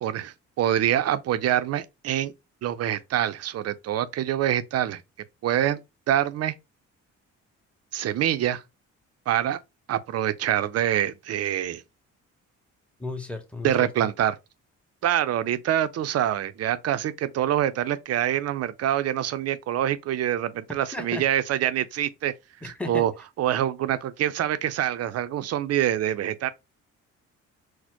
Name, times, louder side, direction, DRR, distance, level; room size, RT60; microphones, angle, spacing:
voice 1, 0.0-2.3 2.6-5.0 5.4-5.8 6.1-6.5 7.9-8.6 9.3-9.6 9.9-11.8 13.6-14.4 15.0-22.3 22.6-23.1 23.4-26.5, right 11 dB, 55° right, 0.5 m, -25 dB
voice 2, 13.0-13.9 20.9-21.2 22.6-23.1, left 2 dB, 5° left, 0.8 m, -34 dB
4.2 x 2.1 x 2.9 m
cardioid pair, 90°, 30 cm